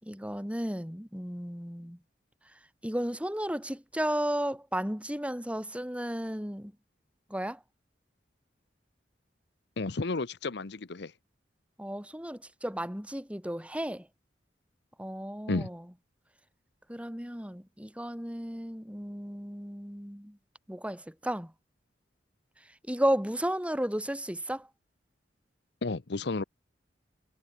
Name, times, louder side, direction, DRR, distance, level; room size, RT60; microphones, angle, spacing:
voice 1, 0.0-2.0 2.8-6.7 7.3-7.6 11.8-14.1 15.0-15.8 16.9-20.4 20.7-21.5 22.9-24.7, equal, 5° right, 4.2 m, -33 dB
voice 2, 9.8-11.1 15.5-15.7 25.8-26.4, left 3 dB, 65° left, 0.8 m, -32 dB
head